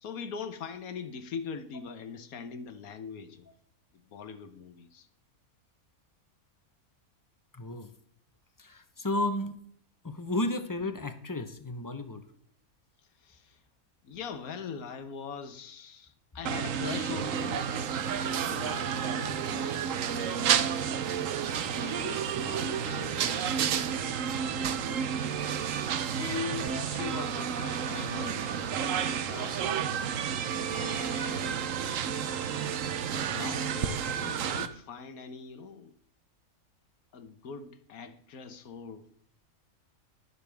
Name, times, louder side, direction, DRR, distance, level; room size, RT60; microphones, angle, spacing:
voice 1, 0.0-3.5 3.9-5.1 13.2-13.6 14.0-17.8 18.3-20.1 21.0-23.3 24.2-25.0 26.0-29.7 30.6-31.7 33.1-35.9 37.1-39.1, left 6 dB, 75° left, 1.4 m, -42 dB
voice 2, 7.5-7.9 8.6-9.6 10.0-12.2 26.6-26.8 32.0-32.1, left 1 dB, 20° left, 0.6 m, -33 dB
sound 1, 16.5-34.7, right 8 dB, 65° right, 1.1 m, -31 dB
20.5 x 6.9 x 3.5 m
omnidirectional pair, 1.5 m